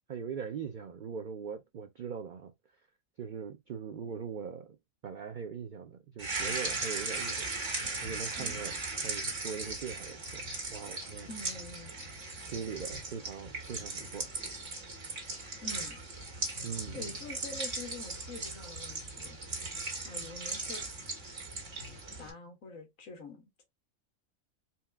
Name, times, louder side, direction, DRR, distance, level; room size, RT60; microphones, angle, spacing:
voice 1, 0.1-2.5 3.2-4.8 5.0-7.5 8.0-8.8 9.0-10.4 10.7-11.3 12.5-14.3 16.6-17.2, right 6 dB, 75° right, 0.4 m, -41 dB
sound 1, 6.2-22.3, right 3 dB, 60° right, 2.0 m, -38 dB
voice 2, 11.3-11.9 15.6-16.0 16.9-19.4 20.0-20.8 22.2-23.4, left 3 dB, 70° left, 1.8 m, -45 dB
4.3 x 2.4 x 3.4 m
omnidirectional pair, 1.4 m